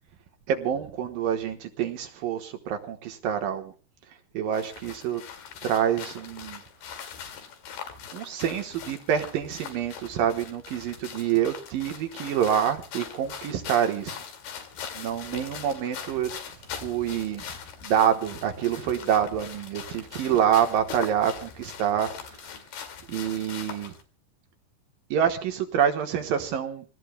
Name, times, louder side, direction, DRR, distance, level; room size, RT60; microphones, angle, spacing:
voice 1, 0.5-3.7 4.3-5.2 5.6-6.6 8.1-14.2 14.9-16.3 16.8-17.4 17.8-22.4 23.1-23.9 25.1-26.9, right 9 dB, 70° right, 6 dB, 2.6 m, -27 dB
sound 1, 4.5-24.0, left 7 dB, 75° left, 4.1 m, -41 dB
27.5 x 19.0 x 2.2 m, 0.34 s
omnidirectional pair, 4.6 m